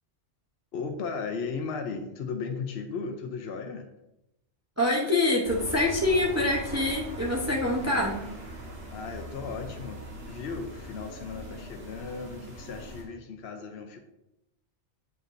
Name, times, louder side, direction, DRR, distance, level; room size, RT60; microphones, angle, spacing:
voice 1, 0.7-3.9 8.9-14.0, left 5 dB, 65° left, 4 dB, 0.9 m, -36 dB
voice 2, 4.8-8.2, left 2 dB, 15° right, -2 dB, 0.7 m, -25 dB
sound 1, 5.4-13.0, equal, 70° right, 1.9 m, -40 dB
7.8 x 5.1 x 2.6 m, 0.88 s
omnidirectional pair, 1.2 m